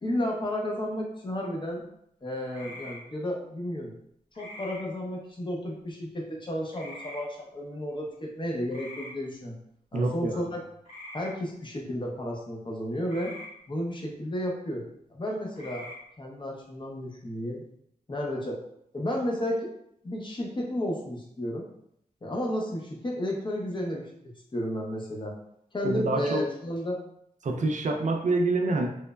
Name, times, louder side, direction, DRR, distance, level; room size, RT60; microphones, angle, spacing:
voice 1, 0.0-1.8 2.2-4.0 4.4-9.6 9.9-10.6 11.1-13.3 13.7-15.9 16.2-17.6 18.1-18.6 18.9-19.7 20.0-21.7 22.2-25.4 25.7-27.0, left 1 dB, 35° left, -1 dB, 0.6 m, -32 dB
sound 1, 2.5-3.0 4.3-4.8 6.7-7.2 8.7-9.1 10.8-11.3 13.1-13.5 15.5-16.0, left 1 dB, 50° left, 1.0 m, -43 dB
voice 2, 9.9-10.5 25.8-26.4 27.4-28.9, right 2 dB, 55° right, 2 dB, 0.4 m, -26 dB
3.0 x 2.0 x 2.2 m, 0.73 s
wide cardioid pair, 85°, 15 cm